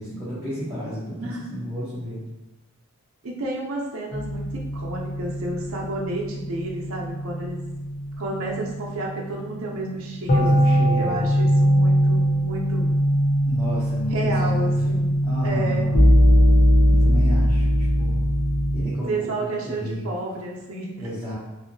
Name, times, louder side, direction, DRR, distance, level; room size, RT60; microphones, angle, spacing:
voice 1, 0.0-2.3 10.3-11.3 13.4-14.7 15.2-16.2 16.9-18.2 18.7-20.0 21.0-21.3, equal, 10° right, -11 dB, 0.7 m, -32 dB
voice 2, 1.1-1.6 3.2-7.6 8.2-12.9 14.1-15.1 15.4-15.9 19.0-21.1, right 2 dB, 90° right, -1 dB, 0.6 m, -31 dB
sound 1, 4.1-18.8, equal, 45° left, 0.6 m, -21 dB
2.7 x 2.7 x 2.6 m, 1.0 s
head